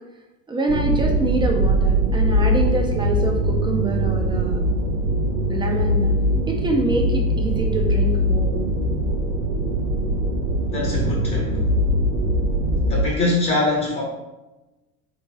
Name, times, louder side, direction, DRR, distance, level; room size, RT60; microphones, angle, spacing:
voice 1, 0.5-4.6 5.5-6.2 6.5-8.6, right 2 dB, 10° right, 1 dB, 0.5 m, -25 dB
sound 1, 0.7-13.1, equal, 80° right, 0.8 m, -21 dB
voice 2, 10.7-11.6 12.9-14.0, left 2 dB, 25° left, -3 dB, 0.9 m, -23 dB
3.4 x 3.1 x 3.0 m, 1.1 s
hypercardioid pair, 85°, 48 cm